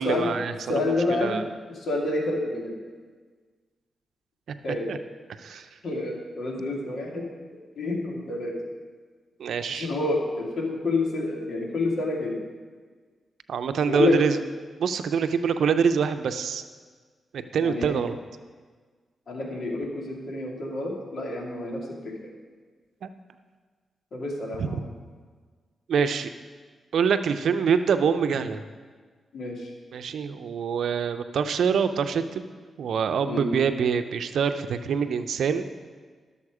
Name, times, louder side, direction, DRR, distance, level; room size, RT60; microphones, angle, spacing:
voice 1, 0.0-1.4 4.9-5.0 5.4-5.7 9.4-9.9 13.5-14.4 14.8-16.6 17.3-18.2 23.0-23.1 24.6-24.7 25.9-26.3 26.9-28.6 29.9-32.5 32.8-35.7, right 6 dB, 80° right, 9 dB, 0.6 m, -25 dB
voice 2, 0.6-1.4 1.7-2.8 4.6-5.0 5.5-8.7 9.7-12.4 13.9-14.2 17.6-18.0 19.3-22.3 24.1-24.9 29.3-29.7 33.3-33.5, left 2 dB, 65° left, -1 dB, 2.2 m, -28 dB
12.0 x 7.1 x 4.9 m, 1.5 s
cardioid pair, 60°, 0 cm